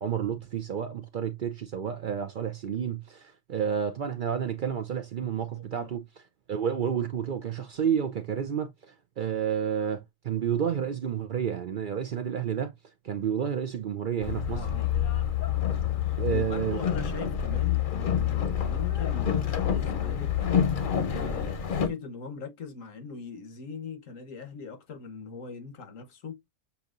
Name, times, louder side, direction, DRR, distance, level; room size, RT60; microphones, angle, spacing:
voice 1, 0.0-6.0 6.5-8.7 9.2-12.7 13.0-14.7 16.2-16.8, right 8 dB, 55° right, 0.6 m, -30 dB
voice 2, 5.6-6.0 14.4-15.1 16.0-20.5 21.1-26.4, left 5 dB, 85° left, 1.4 m, -41 dB
Boat Water vehicle, 14.2-21.9, left 9 dB, 45° left, 0.8 m, -27 dB
7.0 x 2.7 x 2.4 m
omnidirectional pair, 1.3 m